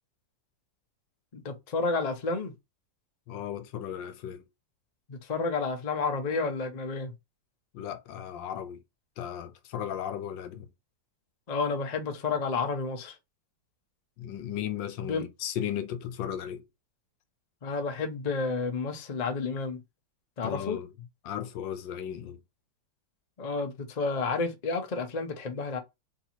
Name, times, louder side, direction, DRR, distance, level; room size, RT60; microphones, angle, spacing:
voice 1, 1.3-2.5 5.1-7.1 11.5-13.2 15.0-15.2 17.6-19.8 20.4-20.8 23.4-25.8, left 4 dB, 55° left, 0.4 m, -30 dB
voice 2, 3.3-4.4 7.7-8.8 9.2-10.7 14.2-16.6 20.4-20.9 21.2-22.4, left 10 dB, 85° left, 1.4 m, -35 dB
3.6 x 2.8 x 4.2 m
omnidirectional pair, 2.0 m